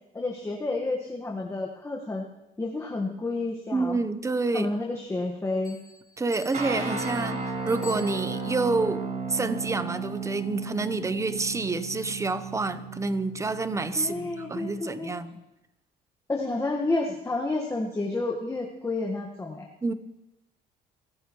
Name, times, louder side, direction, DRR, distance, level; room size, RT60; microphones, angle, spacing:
voice 1, 0.1-2.3 2.6-4.0 4.5-5.8 13.9-15.1 16.3-19.7, left 2 dB, 15° left, 1.5 m, -30 dB
voice 2, 3.7-4.7 6.2-15.4 19.8-19.9, right 3 dB, 15° right, 0.8 m, -28 dB
sound 1, 5.6-8.7, left 5 dB, 60° left, 4.3 m, -48 dB
sound 2, 6.5-14.8, right 4 dB, 50° right, 3.6 m, -34 dB
23.5 x 15.0 x 3.1 m
cardioid pair, 110°, 17 cm